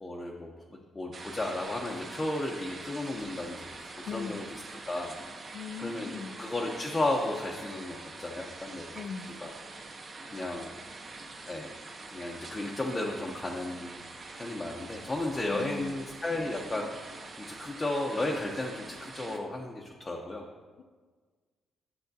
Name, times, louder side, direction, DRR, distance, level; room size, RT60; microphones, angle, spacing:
voice 1, 0.0-0.5 0.9-3.7 4.1-4.6 4.9-5.1 5.8-6.1 6.4-8.9 9.4-9.5 10.3-10.7 11.5-11.7 12.1-14.0 14.4-20.4, left 2 dB, 15° left, -1 dB, 0.6 m, -34 dB
sound 1, 1.1-19.4, right 3 dB, 30° right, 0.7 m, -45 dB
voice 2, 4.0-4.5 5.5-6.4 8.9-9.3 15.5-15.9 20.8-20.9, left 6 dB, 55° left, 7 dB, 0.4 m, -39 dB
10.5 x 7.1 x 2.7 m, 1.4 s
cardioid pair, 165°, 0 cm